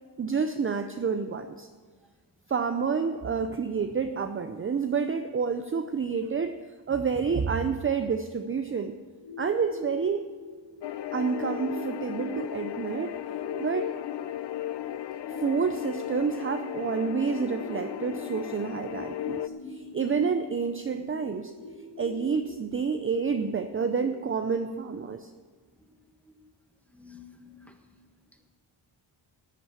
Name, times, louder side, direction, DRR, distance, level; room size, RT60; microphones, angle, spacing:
voice 1, 0.2-1.7 2.5-6.6 6.9-9.0 9.4-10.3 11.1-13.2 13.6-13.9 15.4-19.4 19.7-21.5 22.0-25.3, right 5 dB, 30° right, 7 dB, 0.6 m, -29 dB
sound 1, 9.2-25.2, left 1 dB, 90° left, 2.4 m, -44 dB
sound 2, 10.8-19.5, left 12 dB, 65° left, 0.6 m, -35 dB
voice 2, 26.9-27.8, left 6 dB, 5° left, 4 dB, 1.4 m, -52 dB
13.0 x 8.3 x 7.3 m, 1.5 s
wide cardioid pair, 110°, 44 cm